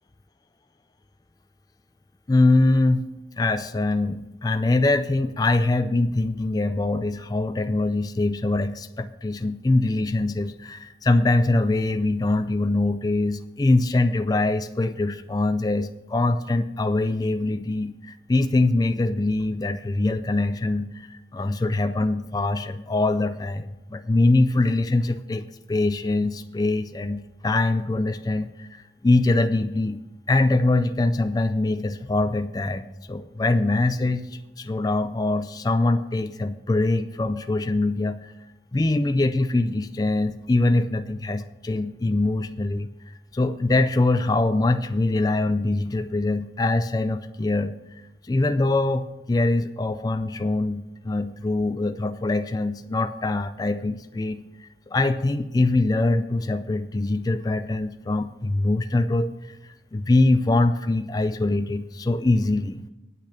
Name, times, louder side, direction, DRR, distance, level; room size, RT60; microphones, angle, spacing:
voice 1, 2.3-3.0 3.4-30.0 30.3-38.3 38.7-42.9 43.3-47.7 48.2-59.3 59.6-62.8, left 2 dB, 20° left, 10 dB, 0.3 m, -23 dB
9.0 x 8.3 x 5.8 m, 0.99 s
head